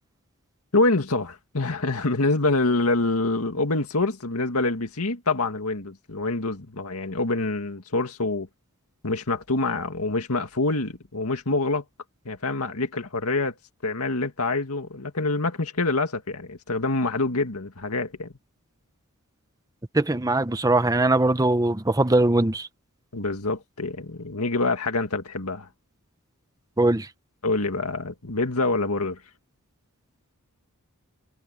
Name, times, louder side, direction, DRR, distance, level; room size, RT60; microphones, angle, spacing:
voice 1, 0.7-8.5 9.0-11.8 12.3-13.5 13.8-18.3 23.1-25.7 27.4-29.2, left 2 dB, 75° left, 2.1 m, -26 dB
voice 2, 19.9-22.7 26.8-27.1, right 2 dB, 15° right, 0.9 m, -21 dB
head